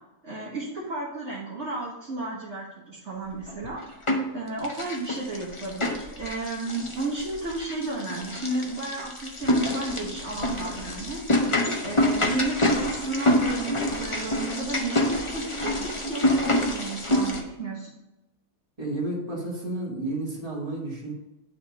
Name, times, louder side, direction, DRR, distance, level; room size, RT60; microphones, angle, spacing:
voice 1, 0.2-3.8 4.3-11.2 11.8-17.9, right 2 dB, 45° right, -6 dB, 1.5 m, -33 dB
sound 1, 3.5-4.3 4.6-17.4, left 1 dB, 30° left, 0.6 m, -27 dB
voice 2, 18.8-21.1, right 2 dB, 20° right, -5 dB, 2.1 m, -31 dB
10.0 x 3.4 x 4.1 m, 0.93 s
omnidirectional pair, 1.7 m